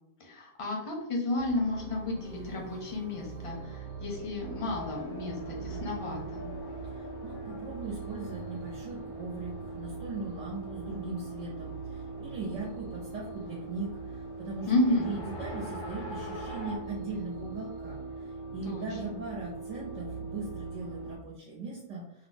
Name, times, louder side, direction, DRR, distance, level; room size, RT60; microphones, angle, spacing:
voice 1, 0.2-6.4 14.7-15.1 18.7-19.1, left 2 dB, 40° left, -1 dB, 0.5 m, -32 dB
sound 1, 1.4-21.2, right 4 dB, 55° right, 0.7 m, -41 dB
Race car auto racing, 4.4-16.8, left 1 dB, 85° left, 1.1 m, -46 dB
voice 2, 6.8-14.7 15.1-22.3, right 3 dB, 90° right, -3 dB, 1.0 m, -39 dB
2.7 x 2.0 x 3.2 m, 0.83 s
omnidirectional pair, 1.3 m